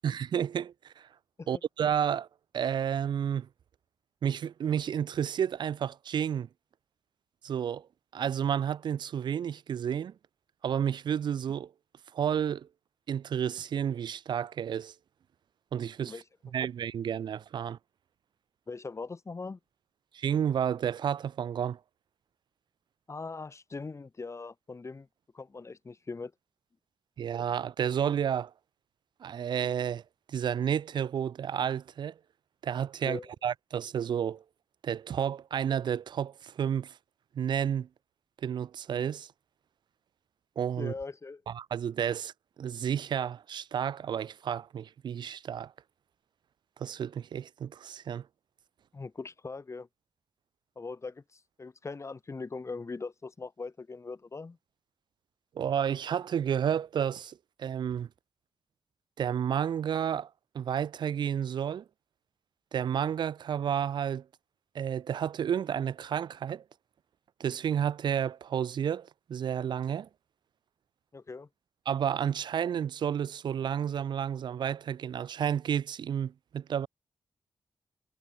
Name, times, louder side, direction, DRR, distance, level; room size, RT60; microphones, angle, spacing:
voice 1, 0.0-1.1 1.5-2.3 2.5-3.5 4.2-6.5 7.4-7.9 8.1-10.1 10.6-11.7 12.1-12.7 13.1-14.9 15.7-16.2 16.5-17.8 20.1-21.8 27.2-28.5 29.2-30.0 30.3-32.1 32.6-34.4 34.8-37.0 37.3-37.9 38.4-39.3 40.6-40.9 41.5-42.3 42.6-45.7 46.8-48.3 55.6-58.1 59.2-60.3 60.5-61.8 62.7-64.2 64.7-66.6 67.4-70.1 71.9-76.9, right 8 dB, 90° right, 4.1 m, -31 dB
voice 2, 18.7-19.6 23.1-25.1 25.3-26.3 33.0-33.3 40.8-41.4 48.9-49.9 50.8-54.6 71.1-71.5, left 4 dB, 40° left, 7.7 m, -40 dB
cardioid pair, 75°, 7 cm